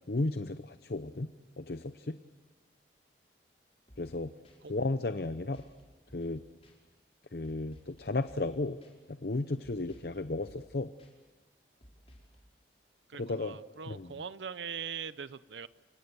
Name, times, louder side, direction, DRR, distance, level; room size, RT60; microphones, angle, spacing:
voice 1, 0.1-1.3 1.6-2.2 4.0-4.3 4.7-5.7 6.1-6.4 7.3-8.8 9.1-10.9 13.2-13.6 13.9-14.1, left 2 dB, 60° left, 11 dB, 0.7 m, -34 dB
sound 1, 3.9-4.2 4.4-4.6 5.5-5.8 6.1-6.4 6.6-6.7 7.4-8.0 8.3-8.5 8.8-8.9 9.6-10.2 10.4-10.7 11.0-11.1 11.8-12.4, equal, 35° left, 5.5 m, -57 dB
voice 2, 13.1-15.7, right 7 dB, 85° right, 16 dB, 0.7 m, -41 dB
29.5 x 25.5 x 7.0 m, 1.5 s
head